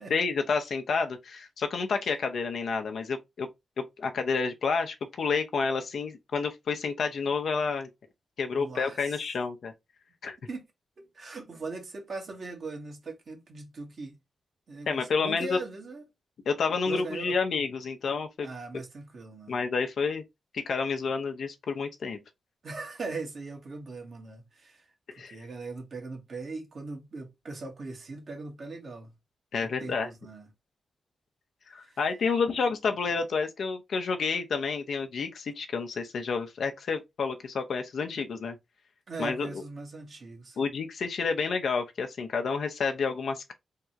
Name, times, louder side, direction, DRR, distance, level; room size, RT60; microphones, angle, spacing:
voice 1, 0.0-3.5 4.0-7.9 8.4-9.7 10.2-10.4 14.9-15.6 16.5-18.5 19.5-20.2 20.5-22.2 25.1-25.4 29.5-30.1 31.7-38.6 39.2-39.6 40.6-43.5, left 5 dB, 75° left, 0.6 m, -29 dB
voice 2, 8.6-9.2 10.5-10.7 11.0-14.2 14.7-16.0 16.8-17.3 18.4-19.5 22.6-29.1 29.6-30.5 31.7-32.0 39.1-40.6, right 3 dB, 60° right, 1.3 m, -40 dB
3.6 x 2.3 x 2.9 m
cardioid pair, 55°, 0 cm